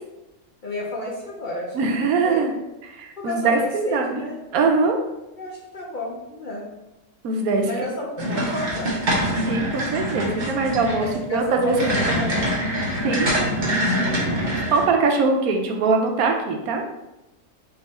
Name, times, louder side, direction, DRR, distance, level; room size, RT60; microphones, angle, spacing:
voice 1, 0.6-2.5 3.2-4.4 5.4-6.7 7.6-8.9 11.0-12.5, left 1 dB, 55° left, -4 dB, 0.5 m, -32 dB
voice 2, 1.7-2.5 3.0-4.3 4.5-5.0 7.2-7.7 8.3-8.5 9.5-12.2 13.0-13.3 14.7-16.8, right 4 dB, 75° right, 3 dB, 1.0 m, -22 dB
sound 1, 8.2-14.8, equal, 35° right, 0.9 m, -24 dB
3.6 x 2.8 x 4.1 m, 0.96 s
omnidirectional pair, 1.6 m